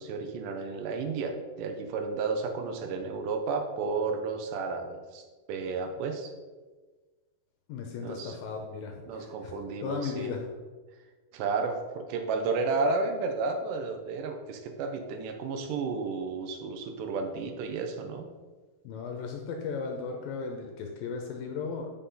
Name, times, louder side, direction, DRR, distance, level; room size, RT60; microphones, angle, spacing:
voice 1, 0.0-5.2 5.5-6.3 8.0-8.4 9.1-10.3 11.3-18.3, right 4 dB, 85° right, 5 dB, 1.8 m, -32 dB
voice 2, 7.7-9.5 9.8-10.5 18.8-21.9, left 5 dB, 75° left, 3 dB, 2.2 m, -36 dB
8.4 x 5.4 x 3.8 m, 1.3 s
omnidirectional pair, 4.6 m